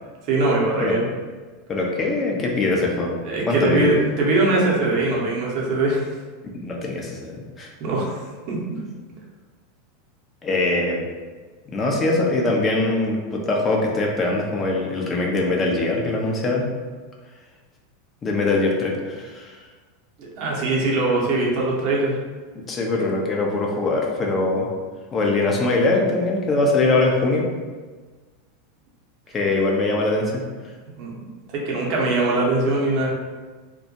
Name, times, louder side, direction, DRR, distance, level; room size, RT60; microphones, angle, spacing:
voice 1, 0.3-1.0 3.2-6.1 7.8-8.2 8.5-8.6 20.2-22.1 22.9-23.0 31.0-31.1 31.5-33.1, right 2 dB, 50° right, -3 dB, 0.7 m, -21 dB
voice 2, 1.7-3.2 3.5-3.9 6.4-7.7 10.4-11.0 11.7-16.7 18.2-19.6 22.7-24.7 25.1-27.5 29.3-30.4, left 2 dB, 25° left, -1 dB, 0.5 m, -22 dB
2.2 x 2.1 x 2.8 m, 1.4 s
figure-of-eight pair, 85°, 0 cm